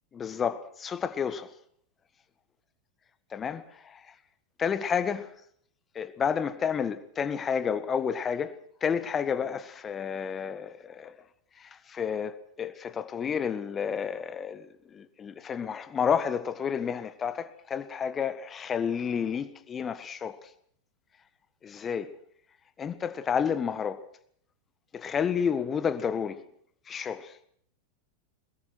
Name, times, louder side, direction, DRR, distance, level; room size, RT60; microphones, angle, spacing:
voice 1, 0.1-1.5 3.3-4.1 4.6-5.3 6.0-8.5 8.8-11.1 11.6-20.5 21.6-22.1 22.8-24.0 24.9-26.4 26.9-27.4, left 7 dB, 20° left, 1.6 m, -30 dB
22.5 x 21.5 x 6.2 m
figure-of-eight pair, 90°, 0 cm